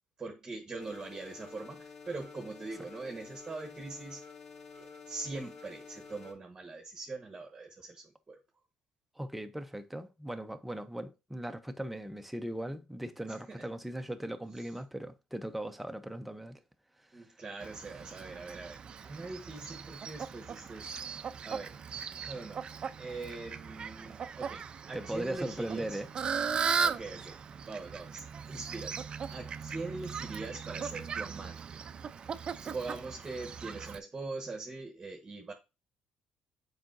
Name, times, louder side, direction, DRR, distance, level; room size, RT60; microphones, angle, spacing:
voice 1, 0.2-4.2 4.8-8.4 13.3-13.7 14.6-14.7 17.1-20.9 21.4-21.7 22.2-22.6 23.0-26.0 26.7-27.4 27.7-31.8 32.6-35.5, right 3 dB, 20° right, 1.2 m, -42 dB
sound 1, 0.8-6.3, left 4 dB, 35° left, 2.0 m, -50 dB
voice 2, 9.2-16.6 17.1-17.3 24.9-26.1, right 1 dB, 5° right, 0.7 m, -39 dB
Fowl, 17.6-34.0, right 6 dB, 35° right, 0.5 m, -38 dB
7.4 x 4.9 x 2.6 m
cardioid pair, 120°, 3 cm